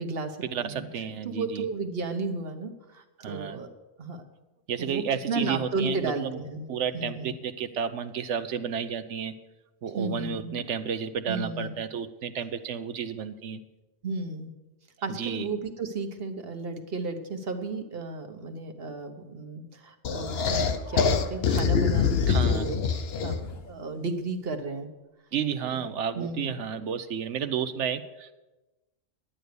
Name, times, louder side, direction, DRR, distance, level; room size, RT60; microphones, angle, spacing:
voice 1, 0.0-0.9 1.2-3.7 4.0-4.2 4.8-6.7 6.9-7.3 9.9-10.6 11.3-11.8 14.0-14.5 15.0-22.8 23.2-24.9 25.6-25.9 26.1-26.5, right 3 dB, 55° right, 6 dB, 1.3 m, -33 dB
voice 2, 0.5-1.7 3.2-3.6 4.7-6.4 6.7-9.3 9.8-13.6 15.1-15.5 22.3-22.7 25.3-28.3, right 7 dB, 75° right, 10 dB, 1.0 m, -32 dB
sound 1, 20.0-23.6, left 6 dB, 60° left, 1.0 m, -25 dB
11.5 x 9.4 x 6.7 m, 1.1 s
omnidirectional pair, 1.3 m